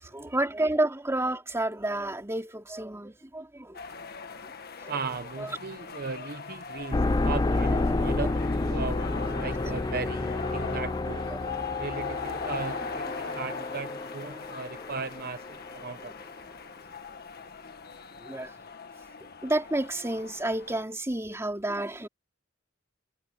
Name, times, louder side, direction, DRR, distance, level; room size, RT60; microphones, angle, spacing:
voice 1, 0.0-3.8 4.8-4.9 5.4-5.6 7.7-7.8 11.3-11.4 13.5-13.6 18.2-18.5 19.2-22.1, right 1 dB, 15° right, 2.9 m, -30 dB
sound 1, 3.7-20.8, left 5 dB, 50° left, 1.7 m, -40 dB
voice 2, 4.9-11.2 11.8-16.1, right 4 dB, 50° right, 0.9 m, -37 dB
sound 2, 6.9-16.0, left 2 dB, 20° left, 0.4 m, -30 dB
head